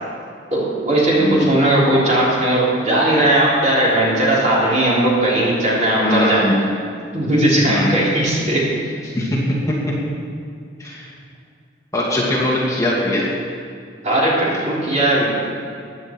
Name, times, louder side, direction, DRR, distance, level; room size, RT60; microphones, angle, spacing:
voice 1, 0.5-6.6 7.1-8.7 14.0-15.4, right 1 dB, 40° right, -6 dB, 3.6 m, -17 dB
voice 2, 1.2-1.5 6.0-6.6 7.7-8.0 9.1-9.8 10.8-11.1 11.9-13.3, left 1 dB, 20° left, -6 dB, 2.4 m, -21 dB
15.5 x 10.5 x 4.5 m, 2.3 s
head